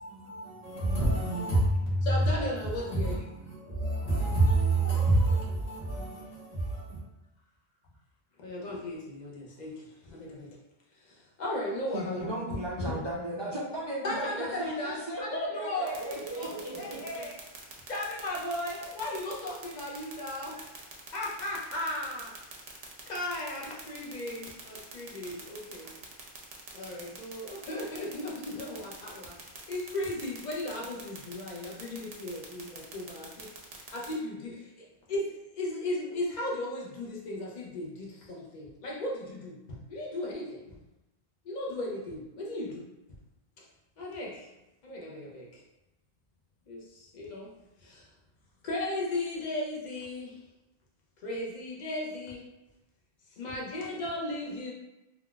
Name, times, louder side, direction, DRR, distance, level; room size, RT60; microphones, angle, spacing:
voice 1, 0.0-7.0, right 2 dB, 85° left, -8 dB, 1.4 m, -28 dB
voice 2, 2.0-3.3 8.4-10.6 11.0-12.3 12.8-13.0 14.0-17.4 17.9-22.3 23.1-25.9 26.7-33.5 33.9-40.8 41.4-42.9 44.0-44.5 44.8-45.6 46.7-47.5 47.8-48.1 48.6-50.4 51.2-52.5 53.3-54.7, left 1 dB, 50° left, -3 dB, 0.8 m, -36 dB
voice 3, 11.9-17.2, right 1 dB, 40° right, -6 dB, 0.4 m, -36 dB
sound 1, 15.9-34.1, right 5 dB, 85° right, 0.9 m, -44 dB
3.7 x 2.3 x 2.2 m, 0.95 s
omnidirectional pair, 1.0 m